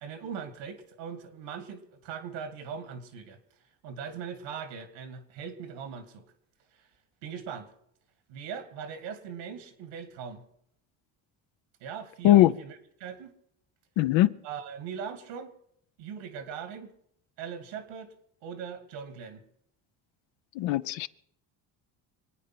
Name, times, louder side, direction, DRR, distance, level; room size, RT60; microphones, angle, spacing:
voice 1, 0.0-6.2 6.7-6.9 7.2-7.7 8.3-10.4 11.8-13.3 14.4-15.5 16.0-16.9 17.4-18.1 18.4-19.4, right 7 dB, 85° right, 2.2 m, -40 dB
voice 2, 14.0-14.3 20.6-21.1, left 14 dB, 80° left, 0.8 m, -20 dB
25.0 x 9.0 x 5.9 m
supercardioid pair, 75°, 45 cm